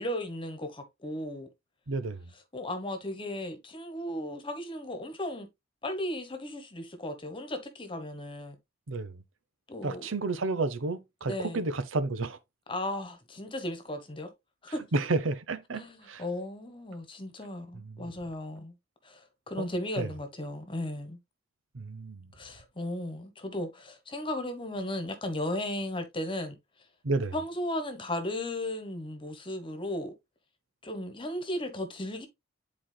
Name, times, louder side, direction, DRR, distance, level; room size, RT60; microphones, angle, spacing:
voice 1, 0.0-1.5 2.5-5.5 5.8-8.6 9.7-10.1 11.3-11.6 12.7-14.3 14.6-14.8 15.7-18.7 19.0-21.2 22.4-26.6 27.3-30.1 30.8-32.3, left 1 dB, 25° left, 1.2 m, -35 dB
voice 2, 1.9-2.3 8.9-9.2 9.8-12.4 14.9-16.2 17.8-18.1 19.6-19.7 20.0-20.1 21.7-22.3 27.0-27.3, right 3 dB, 85° right, 0.7 m, -31 dB
10.5 x 4.3 x 2.2 m
head